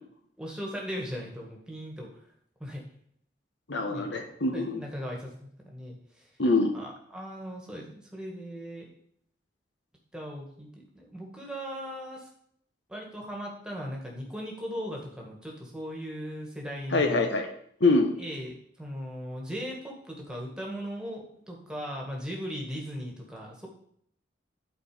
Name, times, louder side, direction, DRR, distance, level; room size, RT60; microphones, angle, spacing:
voice 1, 0.4-2.1 2.6-2.8 3.9-4.1 4.5-6.3 6.7-8.9 10.1-12.3 12.9-17.3 18.2-23.7, equal, 5° right, -1 dB, 1.8 m, -38 dB
voice 2, 3.7-4.8 6.4-6.7 16.9-17.5 17.8-18.1, left 2 dB, 70° left, 5 dB, 1.2 m, -24 dB
11.5 x 4.6 x 5.0 m, 0.67 s
head